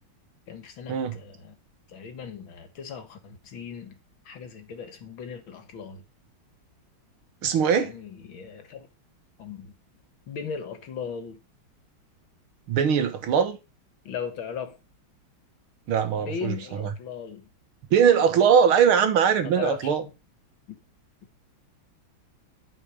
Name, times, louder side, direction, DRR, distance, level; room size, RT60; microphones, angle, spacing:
voice 1, 0.5-1.6 1.9-4.0 4.3-6.1 7.7-8.9 9.4-9.7 10.3-11.4 14.0-14.8 16.2-17.5 19.4-20.0 20.7-20.8, left 6 dB, 70° left, 2.2 m, -37 dB
voice 2, 7.4-7.9 12.7-13.6 15.9-16.9 17.9-20.0, right 7 dB, 80° right, 2.1 m, -21 dB
10.0 x 5.3 x 4.9 m
omnidirectional pair, 2.3 m